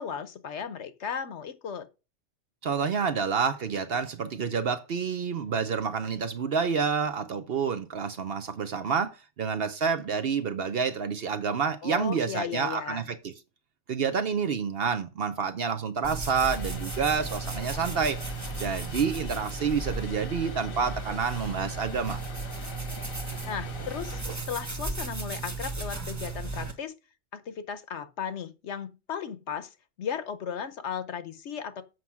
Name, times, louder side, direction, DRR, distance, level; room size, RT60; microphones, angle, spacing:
voice 1, 0.0-1.9 11.8-13.0 23.4-24.2 24.5-26.9 27.3-31.8, left 7 dB, 65° left, 1.1 m, -36 dB
voice 2, 2.6-13.3 13.9-18.2 18.6-22.2, right 6 dB, 55° right, 0.8 m, -28 dB
sound 1, 16.0-26.7, right 3 dB, 15° right, 1.3 m, -35 dB
Vehicle, 16.3-24.2, left 5 dB, 90° left, 1.7 m, -43 dB
7.7 x 5.7 x 5.9 m
omnidirectional pair, 1.4 m